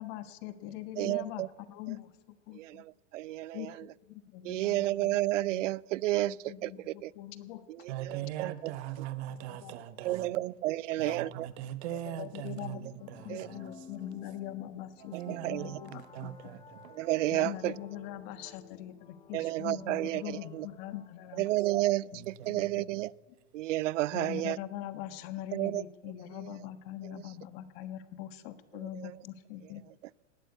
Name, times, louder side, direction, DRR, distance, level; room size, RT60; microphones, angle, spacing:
voice 1, 0.0-2.8 3.5-5.2 5.5-5.6 6.3-7.9 9.4-9.7 10.1-10.5 10.9-11.3 11.9-12.8 13.2-16.5 17.3-21.5 22.0-22.2 22.5-22.8 23.3-23.4 24.1-29.8, left 12 dB, 50° left, 11 dB, 1.4 m, -43 dB
voice 2, 1.0-1.5 2.5-3.7 4.4-7.1 7.8-8.7 10.0-11.5 13.3-13.5 15.3-15.6 16.9-17.7 19.3-20.7 21.4-23.1 23.5-24.6 25.5-25.8 26.4-26.5 29.0-29.1, right 16 dB, 75° right, 25 dB, 0.5 m, -31 dB
voice 3, 7.9-10.3 11.0-13.7 15.1-16.9 18.4-18.5 22.1-22.9, right 12 dB, 60° right, 13 dB, 1.3 m, -41 dB
sound 1, 13.0-21.6, left 5 dB, 15° left, 0.8 m, -53 dB
19.0 x 9.2 x 8.3 m, 1.3 s
hypercardioid pair, 125°, 37 cm